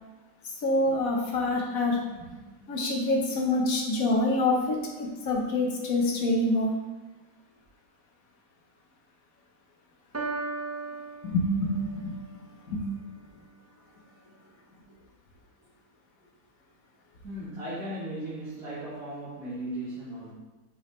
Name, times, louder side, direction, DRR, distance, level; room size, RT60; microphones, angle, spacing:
voice 1, 0.4-2.3 2.7-6.7 11.2-12.2 12.7-12.8, left 2 dB, 65° left, -1 dB, 1.6 m, -26 dB
Piano, 10.1-12.1, right 3 dB, 15° right, 0.5 m, -36 dB
voice 2, 17.2-20.3, right 1 dB, 65° right, -14 dB, 2.7 m, -37 dB
8.5 x 4.8 x 3.2 m, 1.2 s
omnidirectional pair, 1.6 m